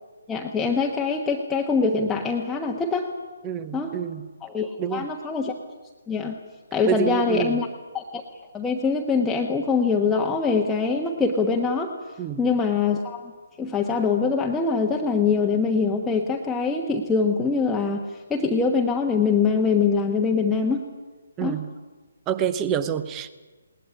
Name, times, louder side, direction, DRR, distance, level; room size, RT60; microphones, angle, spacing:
voice 1, 0.3-3.1 3.7-4.0 4.4-5.5 6.1-6.4 6.7-7.7 7.9-8.2 8.5-11.9 12.4-13.3 13.6-18.0 18.3-20.8 21.4-21.6, left 4 dB, 10° left, 0 dB, 1.4 m, -23 dB
voice 2, 3.4-4.2 4.8-5.1 6.8-7.6 12.2-12.4 21.4-21.7 22.3-23.3, right 8 dB, 15° right, 14 dB, 1.2 m, -27 dB
20.5 x 19.5 x 9.9 m, 1.3 s
figure-of-eight pair, 140°, 0 cm